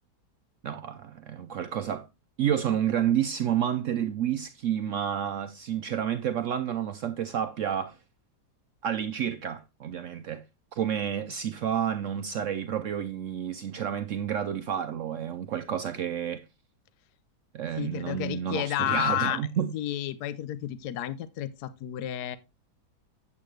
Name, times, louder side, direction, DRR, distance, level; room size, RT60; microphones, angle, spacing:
voice 1, 0.6-2.1 2.4-8.0 8.8-10.4 10.7-16.4 17.5-19.7, right 9 dB, 70° right, 0.7 m, -30 dB
voice 2, 17.8-19.4 19.7-22.4, left 13 dB, 75° left, 1.2 m, -31 dB
8.4 x 8.3 x 3.1 m
omnidirectional pair, 1.8 m